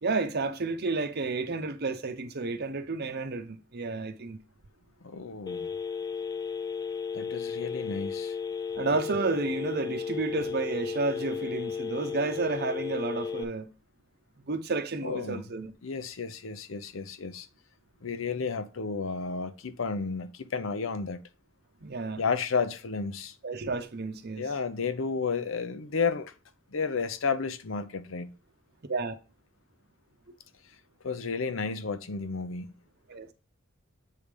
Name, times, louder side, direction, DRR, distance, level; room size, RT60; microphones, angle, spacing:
voice 1, 0.0-4.4 8.8-13.7 14.5-15.7 21.8-22.2 23.4-24.5 28.9-29.2 33.1-33.3, right 3 dB, 55° right, 0.8 m, -31 dB
voice 2, 5.0-5.7 7.1-8.3 15.0-15.4 15.8-17.5 18.0-21.2 22.2-23.3 24.4-26.3 26.7-28.3 31.0-32.7, left 5 dB, 70° left, 0.7 m, -32 dB
Telephone, 5.5-13.4, left 5 dB, 20° left, 0.4 m, -34 dB
8.4 x 3.4 x 5.2 m
head